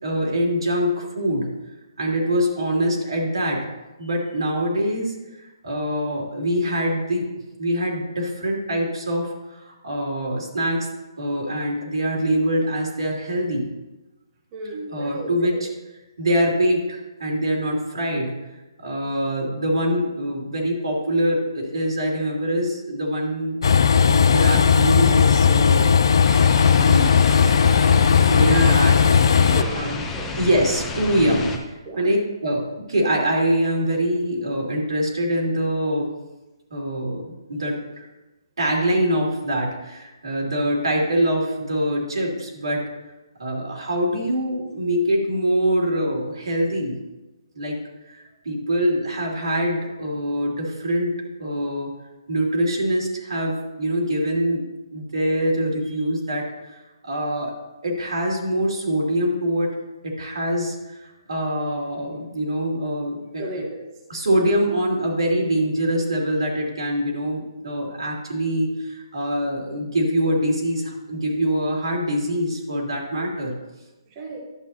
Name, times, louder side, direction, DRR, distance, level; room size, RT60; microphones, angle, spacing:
voice 1, 0.0-1.5 2.0-3.7 4.0-7.3 7.6-10.9 11.2-13.7 14.9-15.7 16.2-18.4 18.8-23.6 23.9-26.1 26.8-29.0 29.7-30.1 30.4-31.5 32.0-32.6 32.9-36.1 36.7-38.1 38.6-42.8 43.4-47.0 47.5-47.8 48.1-51.9 52.3-57.5 57.8-59.8 60.0-63.7 64.1-73.5, equal, 85° right, -1 dB, 2.8 m, -24 dB
voice 2, 14.5-15.6 28.3-28.9 29.3-29.8 30.1-30.4 31.8-32.0 63.4-63.8 74.1-74.4, right 2 dB, 25° right, 0 dB, 1.2 m, -33 dB
Train, 23.6-29.6, left 6 dB, 65° left, 0.5 m, -16 dB
sound 1, 26.2-31.6, left 3 dB, 10° left, 0.7 m, -31 dB
11.5 x 7.8 x 2.8 m, 1.0 s
hypercardioid pair, 155°, 3 cm